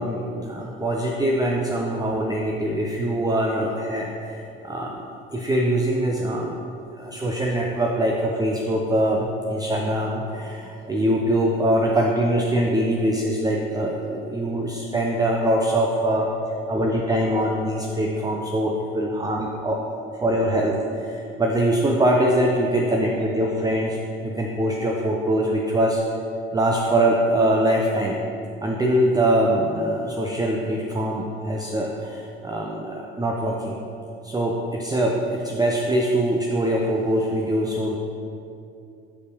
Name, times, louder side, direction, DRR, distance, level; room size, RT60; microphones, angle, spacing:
voice 1, 0.0-5.0 5.3-16.3 16.7-19.8 20.2-24.0 24.2-26.0 26.5-28.2 28.6-33.8 34.2-38.0, right 1 dB, 15° right, -1 dB, 0.6 m, -23 dB
4.8 x 4.6 x 5.3 m, 2.6 s
hypercardioid pair, 60°, 29 cm